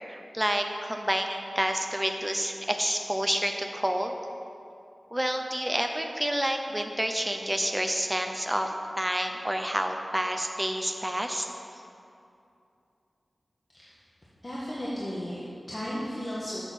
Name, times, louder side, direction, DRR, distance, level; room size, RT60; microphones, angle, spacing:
voice 1, 0.1-4.1 5.1-8.7 9.0-11.5, equal, 10° right, 4 dB, 0.5 m, -29 dB
voice 2, 14.4-16.6, equal, 35° left, -8 dB, 1.3 m, -35 dB
7.0 x 6.2 x 6.0 m, 2.6 s
wide cardioid pair, 90°, 0 cm